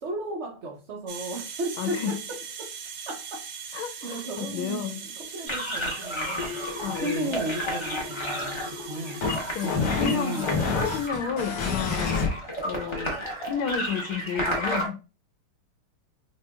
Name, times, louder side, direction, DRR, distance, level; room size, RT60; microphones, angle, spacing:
voice 1, 0.0-2.1 2.6-2.7 3.1-3.4 3.7-4.9 5.3-6.6 6.9-9.2 9.6-10.7, right 2 dB, 85° right, 0.6 m, -34 dB
sound 1, 1.1-11.1, right 6 dB, 70° right, 1.1 m, -41 dB
voice 2, 1.8-2.2 3.7-5.0 6.8-7.3 9.5-10.6 10.9-12.2 12.6-13.2 13.5-15.0, left 7 dB, 75° left, 1.3 m, -31 dB
sound 2, 5.5-14.9, equal, 30° left, 0.5 m, -33 dB
sound 3, 6.4-12.3, left 5 dB, 60° left, 1.3 m, -30 dB
5.3 x 3.0 x 2.3 m
omnidirectional pair, 2.4 m